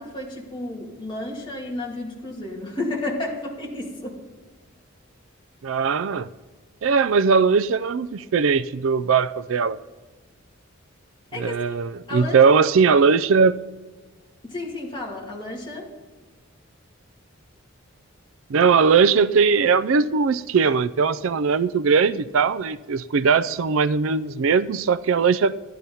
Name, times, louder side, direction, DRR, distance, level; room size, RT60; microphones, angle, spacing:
voice 1, 0.0-4.1 11.3-11.6 12.1-12.6 14.4-15.9, left 2 dB, 25° left, -2 dB, 2.4 m, -32 dB
voice 2, 5.6-6.3 6.8-9.8 11.3-13.6 18.5-25.5, right 5 dB, 70° right, 16 dB, 0.4 m, -19 dB
12.5 x 10.5 x 5.6 m, 1.2 s
head